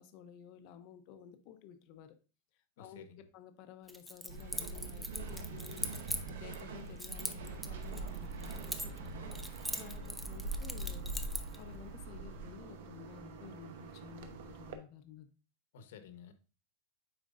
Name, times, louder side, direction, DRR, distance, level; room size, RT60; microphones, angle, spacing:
voice 1, 0.0-2.2 2.8-11.1 11.6-15.3, left 9 dB, 35° left, 9 dB, 0.6 m, -53 dB
voice 2, 2.8-3.2 15.7-16.3, left 7 dB, 65° left, 9 dB, 1.0 m, -53 dB
Keys jangling, 3.9-6.6 7.0-9.1 9.3-11.6, equal, ahead, 0.4 m, -41 dB
sound 1, 4.3-12.6, right 3 dB, 90° right, 1.1 m, -43 dB
sound 2, 7.4-14.8, right 5 dB, 55° right, 0.8 m, -50 dB
9.0 x 4.4 x 2.5 m, 0.34 s
supercardioid pair, 180°, 0 cm